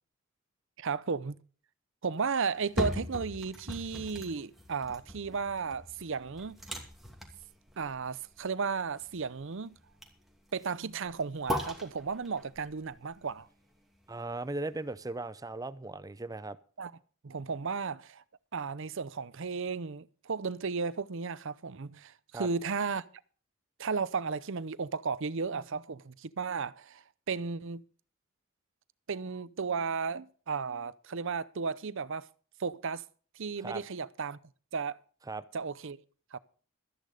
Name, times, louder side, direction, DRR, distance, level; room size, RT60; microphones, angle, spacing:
voice 1, 0.8-1.4 2.0-6.6 7.8-9.7 10.5-13.5 16.8-16.9 17.2-18.2 18.5-23.0 23.8-27.8 29.1-32.3 32.6-33.0 33.4-34.4 34.7-35.0 35.5-36.0 36.3-36.4, right 5 dB, 65° right, 0.7 m, -34 dB
sound 1, 2.5-14.5 14.9-15.0, left 1 dB, ahead, 2.5 m, -41 dB
voice 2, 14.1-16.6 22.3-22.5 33.6-33.8 35.3-35.4, right 2 dB, 20° right, 0.6 m, -37 dB
13.5 x 10.5 x 5.0 m
head